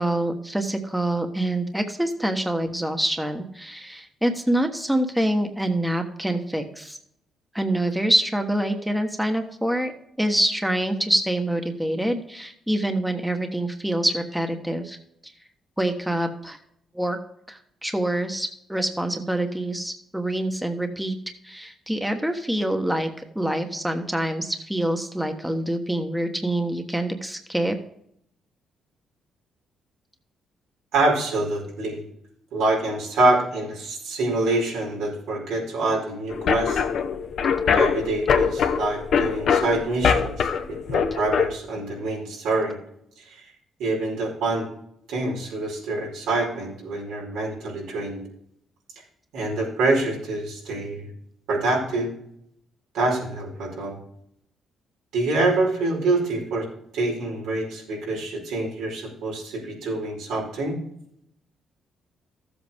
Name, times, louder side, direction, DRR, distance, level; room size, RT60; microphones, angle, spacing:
voice 1, 0.0-7.0 7.5-9.9 10.2-15.0 15.8-16.6 16.9-17.2 17.5-21.2 21.4-27.8, right 1 dB, 5° right, 5 dB, 1.2 m, -26 dB
voice 2, 30.9-32.0 32.5-36.8 37.7-42.8 43.2-43.4 43.8-44.7 45.1-48.2 49.3-51.1 51.5-52.1 52.9-54.0 55.1-56.7 56.9-60.8, right 2 dB, 90° right, -3 dB, 4.9 m, -26 dB
sound 1, 36.3-41.5, left 7 dB, 65° left, 1.0 m, -23 dB
14.0 x 8.0 x 3.6 m, 0.72 s
cardioid pair, 90°, 0 cm